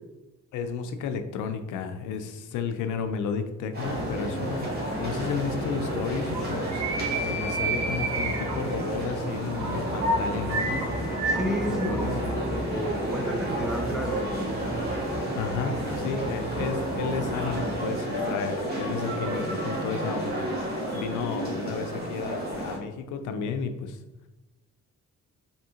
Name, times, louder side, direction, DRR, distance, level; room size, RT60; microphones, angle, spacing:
voice 1, 0.5-6.8 7.2-10.9 11.7-12.1 15.3-20.5 20.9-24.0, left 6 dB, 80° left, 8 dB, 0.4 m, -32 dB
sound 1, 3.7-22.8, right 1 dB, 30° right, 1.2 m, -32 dB
sound 2, 3.8-17.8, right 2 dB, 60° right, 1.0 m, -33 dB
voice 2, 11.3-14.3 19.2-19.8, equal, ahead, 1 dB, 0.6 m, -32 dB
3.5 x 2.8 x 2.8 m, 1.0 s
cardioid pair, 90°, 30 cm